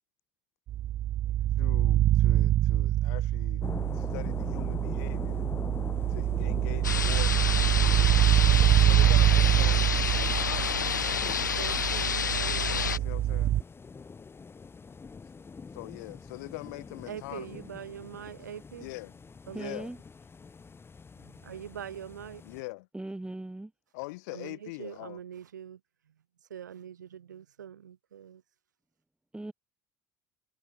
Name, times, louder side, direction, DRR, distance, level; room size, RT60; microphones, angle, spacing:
sound 1, 0.7-13.6, right 13 dB, 45° right, 0.7 m, -25 dB
voice 1, 1.3-3.7 3.9-5.5 6.1-7.6 8.8-11.1 13.0-13.5 14.9-15.0 15.7-17.6 18.8-19.1 19.5-19.9 22.4-22.9 23.9-25.2, left 24 dB, 65° left, 1.3 m, -43 dB
sound 2, 3.6-22.6, left 5 dB, 25° left, 3.8 m, -43 dB
sound 3, 6.8-13.0, left 6 dB, 85° left, 0.8 m, -29 dB
voice 2, 11.6-13.1 14.0-14.1 17.1-18.9 19.5-19.7 21.1-22.4 24.3-25.8 26.1-26.2 26.5-28.4, right 9 dB, 80° right, 3.0 m, -43 dB
voice 3, 19.5-20.0 22.9-23.7 29.3-29.5, right 2 dB, 10° right, 2.5 m, -38 dB
figure-of-eight pair, 60°, 10 cm